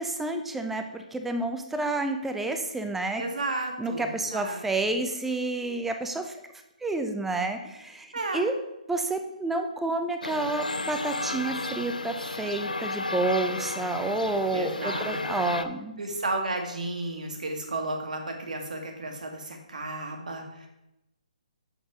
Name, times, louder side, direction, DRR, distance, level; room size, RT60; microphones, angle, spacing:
voice 1, 0.0-3.2 3.8-6.4 6.8-8.5 8.9-16.0, right 2 dB, 5° right, 6 dB, 0.6 m, -29 dB
voice 2, 3.2-4.6 8.1-8.5 14.5-15.5 16.0-20.7, right 2 dB, 70° right, 3 dB, 1.6 m, -33 dB
sound 1, 10.2-15.6, left 2 dB, 85° left, 0.5 m, -33 dB
7.2 x 6.3 x 3.6 m, 0.91 s
figure-of-eight pair, 135°, 4 cm